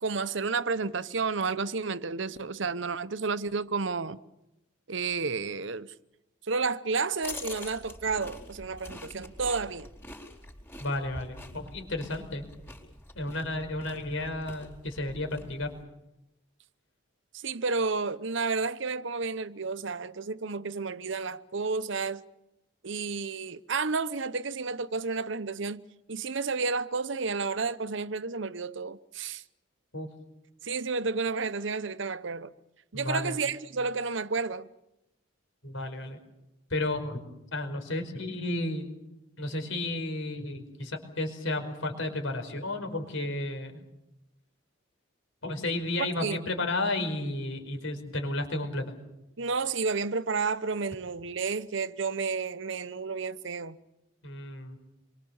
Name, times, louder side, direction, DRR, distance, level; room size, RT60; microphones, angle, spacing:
voice 1, 0.0-4.2 4.9-5.9 6.5-9.9 17.4-22.2 22.8-25.8 26.1-29.4 30.6-32.5 32.9-34.7 46.2-46.4 49.4-53.8, right 4 dB, 65° right, 0.8 m, -31 dB
sound 1, 7.2-15.8, left 1 dB, 10° left, 4.3 m, -45 dB
voice 2, 10.8-12.4 13.1-15.7 29.9-30.1 32.9-33.4 35.6-36.2 36.7-37.2 37.5-38.9 39.4-43.8 45.4-48.9 54.2-54.8, left 2 dB, 80° left, 5.0 m, -32 dB
27.0 x 23.5 x 7.1 m
head